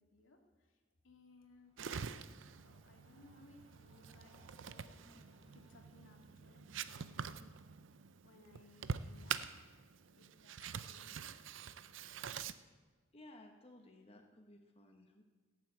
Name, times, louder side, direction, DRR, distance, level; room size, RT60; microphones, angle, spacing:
voice 1, 0.0-5.0 5.2-7.5 8.2-11.3, left 2 dB, 85° left, 1 dB, 2.3 m, -64 dB
Train, 1.3-6.2, equal, 35° right, 4.4 m, -68 dB
sound 1, 1.8-12.5, right 7 dB, 70° right, 0.6 m, -46 dB
voice 2, 13.1-15.2, left 1 dB, 30° left, 2 dB, 1.1 m, -58 dB
17.0 x 7.6 x 8.5 m, 1.4 s
head